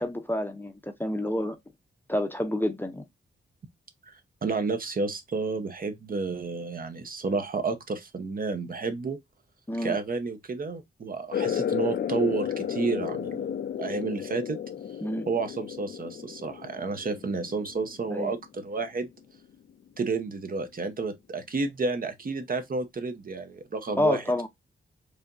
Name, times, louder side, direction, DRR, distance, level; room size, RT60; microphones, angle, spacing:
voice 1, 0.0-1.6 2.1-3.1 9.7-10.0 15.0-15.3 18.1-18.3 24.0-24.5, left 1 dB, 10° left, 0.6 m, -28 dB
voice 2, 4.1-9.2 9.8-14.6 15.3-19.1 20.0-24.2, right 4 dB, 45° right, 0.8 m, -31 dB
sound 1, 11.3-18.5, left 8 dB, 55° left, 0.5 m, -33 dB
4.8 x 2.8 x 2.5 m
wide cardioid pair, 95°, 21 cm